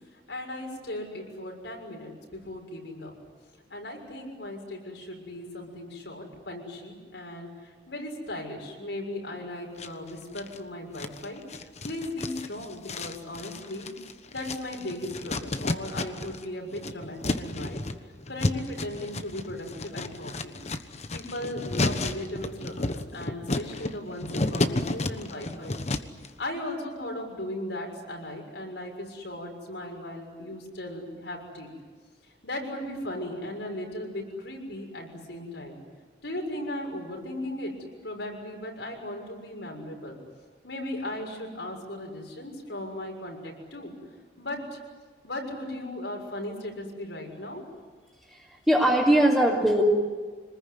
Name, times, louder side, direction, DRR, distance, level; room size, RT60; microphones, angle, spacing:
voice 1, 0.3-3.1 3.7-13.9 14.3-17.8 18.3-20.6 21.1-25.8 26.4-31.7 32.4-35.8 36.2-37.7 38.0-40.2 40.6-43.9 44.4-44.8 45.2-47.6, left 1 dB, 75° left, 1 dB, 6.6 m, -37 dB
sound 1, 9.8-10.6 11.0-16.4 16.7-26.3, left 2 dB, 40° left, 1.2 m, -32 dB
voice 2, 48.3-49.8, right 1 dB, 5° right, -7 dB, 3.2 m, -21 dB
27.0 x 20.5 x 9.7 m, 1.5 s
head